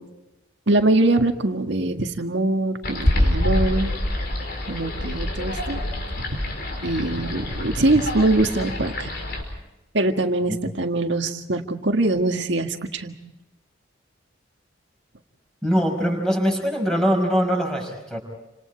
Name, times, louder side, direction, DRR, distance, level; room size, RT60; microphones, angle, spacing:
voice 1, 0.7-3.9 4.7-5.8 6.2-6.4 6.8-9.1 9.9-13.1, right 2 dB, 60° right, 5 dB, 1.8 m, -23 dB
sound 1, 2.8-9.4, left 1 dB, 50° left, 5.0 m, -26 dB
voice 2, 15.6-18.2, equal, 5° left, 2 dB, 5.3 m, -22 dB
29.5 x 26.5 x 4.7 m, 0.97 s
head